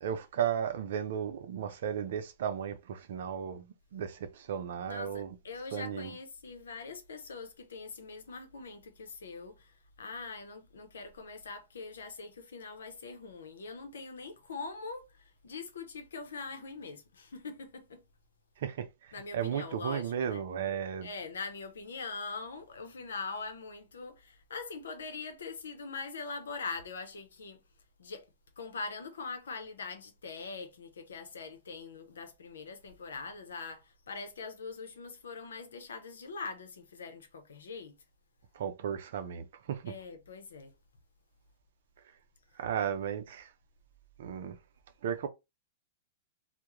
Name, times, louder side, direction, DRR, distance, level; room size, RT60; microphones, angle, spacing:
voice 1, 0.0-3.7 3.9-5.4 5.7-6.2 18.6-21.1 38.5-39.9 42.6-43.5 44.2-44.6 45.0-45.3, right 8 dB, 65° right, 0.5 m, -35 dB
voice 2, 4.9-18.0 19.1-20.4 21.0-27.6 28.0-28.3 28.6-38.0 39.9-40.7, left 4 dB, 80° left, 0.6 m, -42 dB
2.3 x 2.1 x 3.0 m
hypercardioid pair, 120°, 0 cm